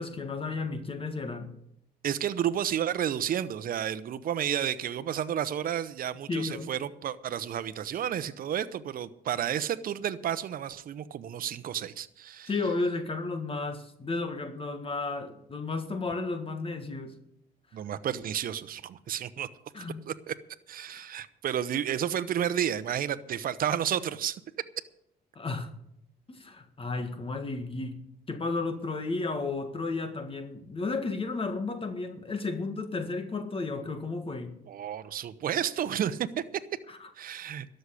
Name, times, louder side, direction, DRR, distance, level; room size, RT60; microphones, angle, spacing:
voice 1, 0.0-1.5 6.3-6.7 12.5-17.2 19.7-20.1 20.9-21.1 25.4-25.7 26.3-28.0 28.3-34.5 36.9-37.1, left 3 dB, 30° left, 8 dB, 1.7 m, -33 dB
voice 2, 2.0-12.5 17.7-19.5 19.8-20.3 20.7-24.4 34.7-36.4 37.2-37.7, right 9 dB, 55° right, 12 dB, 0.8 m, -31 dB
13.0 x 6.6 x 9.9 m, 0.75 s
cardioid pair, 85°, 17 cm